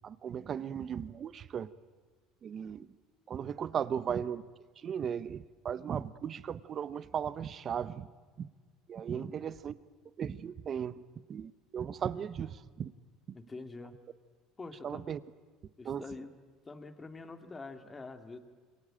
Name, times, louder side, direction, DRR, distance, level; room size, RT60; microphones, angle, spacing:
voice 1, 0.0-1.7 2.4-2.9 3.3-4.4 4.8-8.1 8.4-8.5 8.9-9.8 10.2-11.0 11.3-12.9 14.8-15.2 15.8-16.0, right 8 dB, 40° right, 17 dB, 1.0 m, -36 dB
voice 2, 9.1-9.4 13.3-14.0 14.6-15.1 15.8-16.3 16.6-18.4, left 3 dB, 20° left, 8 dB, 2.4 m, -46 dB
27.0 x 24.0 x 9.1 m, 1.5 s
supercardioid pair, 115°, 0 cm